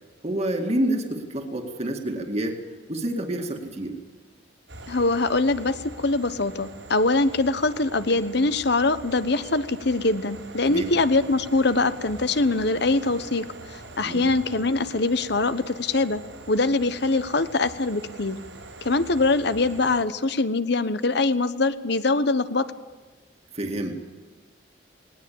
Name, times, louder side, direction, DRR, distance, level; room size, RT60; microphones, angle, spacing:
voice 1, 0.2-2.6 2.9-4.0 10.7-10.9 14.0-14.3 23.5-24.0, right 1 dB, 35° right, 3 dB, 2.2 m, -28 dB
sound 1, 4.7-20.0, right 2 dB, 80° right, 5.0 m, -43 dB
voice 2, 4.9-13.4 14.0-16.2 16.5-18.4 18.8-22.7, left 3 dB, 60° left, 13 dB, 1.1 m, -23 dB
19.5 x 19.5 x 8.7 m, 1.3 s
head